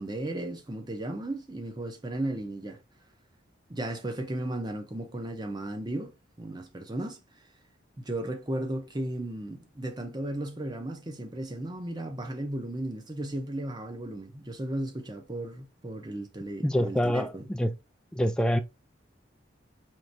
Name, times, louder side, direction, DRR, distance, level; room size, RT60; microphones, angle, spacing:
voice 1, 0.0-2.8 3.7-6.1 6.4-7.2 8.0-17.5, right 1 dB, 20° right, 0.7 m, -35 dB
voice 2, 16.6-17.7 18.1-18.6, equal, 5° left, 0.3 m, -26 dB
4.6 x 3.1 x 2.6 m
head